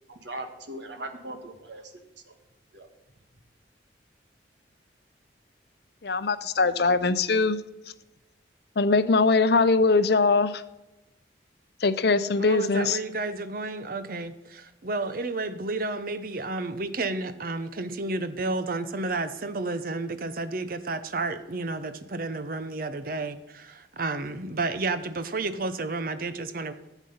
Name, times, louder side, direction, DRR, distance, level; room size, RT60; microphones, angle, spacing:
voice 1, 0.1-1.9 2.2-2.3 2.7-2.9, right 1 dB, 75° right, 6 dB, 1.4 m, -39 dB
voice 2, 6.0-7.6 8.8-10.6 11.8-13.0, left 3 dB, 60° left, 13 dB, 0.6 m, -22 dB
voice 3, 12.4-26.7, right 3 dB, 50° right, 11 dB, 0.8 m, -31 dB
11.5 x 8.2 x 5.6 m, 0.98 s
head